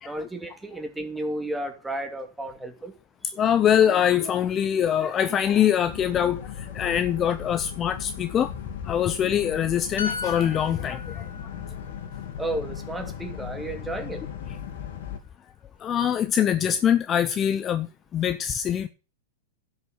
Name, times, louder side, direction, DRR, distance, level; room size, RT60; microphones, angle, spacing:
voice 1, 0.0-2.9 3.2-3.4 12.4-14.2, right 1 dB, 10° right, 2.4 m, -33 dB
voice 2, 3.4-8.5 8.8-11.2 15.8-18.9, left 9 dB, 30° left, 0.7 m, -23 dB
Boat Water vehicle, 5.8-15.2, left 8 dB, 65° left, 2.9 m, -37 dB
sound 1, 10.0-13.6 13.9-14.1, left 4 dB, 85° left, 2.0 m, -38 dB
11.0 x 6.4 x 7.0 m
hypercardioid pair, 120°, 0 cm